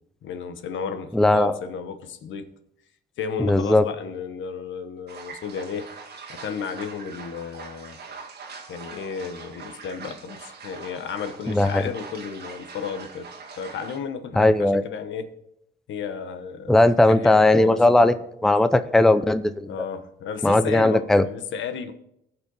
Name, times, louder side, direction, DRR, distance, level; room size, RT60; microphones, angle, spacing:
voice 1, 0.2-2.5 3.2-5.9 6.3-8.0 8.7-13.3 13.6-15.3 15.9-16.8 17.1-18.2 19.6-21.9, left 6 dB, 75° left, 1.1 m, -33 dB
voice 2, 1.1-1.5 3.5-3.8 11.5-11.8 14.4-14.8 16.7-18.1 18.4-19.9 20.4-21.2, left 2 dB, ahead, 0.5 m, -18 dB
sound 1, 5.1-14.0, right 5 dB, 55° right, 1.6 m, -42 dB
17.0 x 5.8 x 4.1 m
cardioid pair, 90°, 20 cm